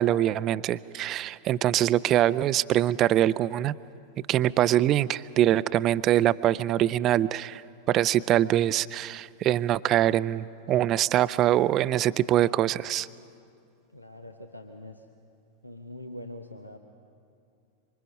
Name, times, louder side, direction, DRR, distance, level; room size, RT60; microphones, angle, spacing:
voice 1, 0.0-3.7 4.3-7.6 7.9-13.1, right 12 dB, 35° right, 17 dB, 0.4 m, -24 dB
voice 2, 13.9-15.1 15.6-16.8, left 1 dB, 85° left, 5 dB, 1.0 m, -43 dB
26.0 x 25.0 x 5.4 m, 2.5 s
figure-of-eight pair, 90°, 0 cm